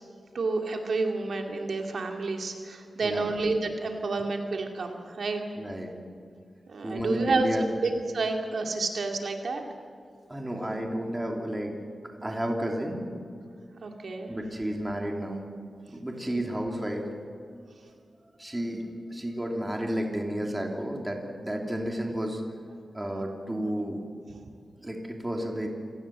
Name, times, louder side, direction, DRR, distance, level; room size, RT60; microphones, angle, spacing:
voice 1, 0.3-5.4 6.7-7.5 7.8-9.6 13.8-14.3 16.3-16.4 18.6-18.7, right 3 dB, 65° right, 3 dB, 2.6 m, -30 dB
voice 2, 3.0-3.3 5.6-5.9 6.8-7.7 10.3-11.7 12.0-13.0 14.3-15.4 15.9-17.0 18.4-22.4 22.9-24.0 24.8-25.7, equal, 10° right, 1 dB, 3.2 m, -32 dB
27.5 x 18.5 x 7.7 m, 2.3 s
wide cardioid pair, 145°, 0 cm